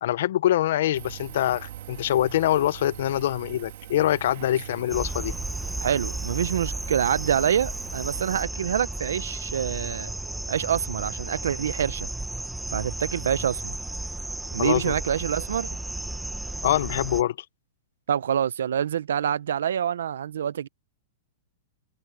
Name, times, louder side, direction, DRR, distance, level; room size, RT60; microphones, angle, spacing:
voice 1, 0.0-5.3 14.6-14.9 16.6-17.4, left 12 dB, 55° left, 0.6 m, -24 dB
Engine, 0.9-8.4, right 12 dB, 55° right, 3.1 m, -42 dB
sound 1, 4.9-17.2, right 2 dB, 5° right, 1.1 m, -34 dB
voice 2, 5.8-10.1 10.5-12.1 12.7-13.7 14.5-15.7 18.1-20.7, right 9 dB, 85° right, 0.8 m, -26 dB
supercardioid pair, 175°, 0 cm